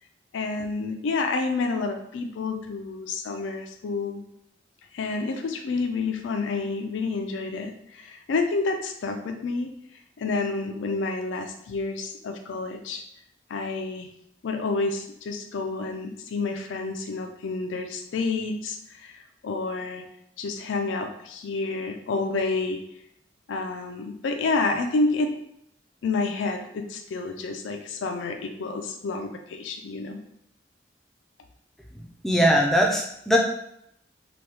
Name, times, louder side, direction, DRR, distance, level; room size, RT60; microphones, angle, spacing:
voice 1, 0.3-4.2 4.9-9.7 10.2-13.0 13.5-14.1 14.4-20.0 20.4-22.8 23.5-25.4 26.0-30.2, left 3 dB, 90° left, 5 dB, 0.4 m, -29 dB
voice 2, 31.9-33.4, equal, ahead, -1 dB, 0.4 m, -21 dB
2.9 x 2.2 x 3.3 m, 0.74 s
head